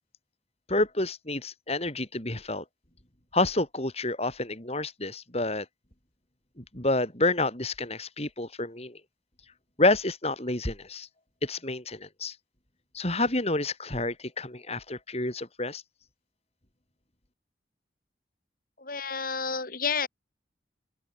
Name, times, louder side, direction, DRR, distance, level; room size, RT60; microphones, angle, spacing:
voice 1, 0.7-2.6 3.3-5.7 6.6-9.0 9.8-11.1 11.4-12.3 12.9-15.8, left 2 dB, 35° left, 7.3 m, -29 dB
voice 2, 18.8-20.1, left 5 dB, 50° left, 5.6 m, -30 dB
open air
head